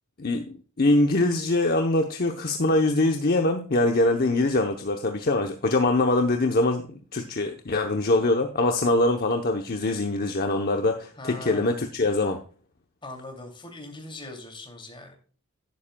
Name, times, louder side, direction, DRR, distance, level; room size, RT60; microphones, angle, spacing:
voice 1, 0.2-12.4, left 2 dB, 45° left, 4 dB, 0.8 m, -23 dB
voice 2, 11.2-11.8 13.0-15.1, left 2 dB, 20° left, 3 dB, 2.7 m, -41 dB
11.5 x 10.0 x 2.3 m, 0.40 s
head